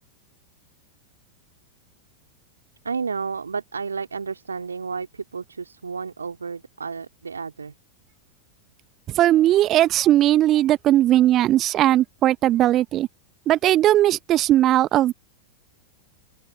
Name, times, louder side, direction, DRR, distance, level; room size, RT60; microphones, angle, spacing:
voice 1, 2.8-7.7, right 5 dB, 75° right, 3.7 m, -31 dB
voice 2, 9.1-13.1 13.5-15.1, right 13 dB, 35° right, 1.3 m, -18 dB
open air
figure-of-eight pair, 90°, 0 cm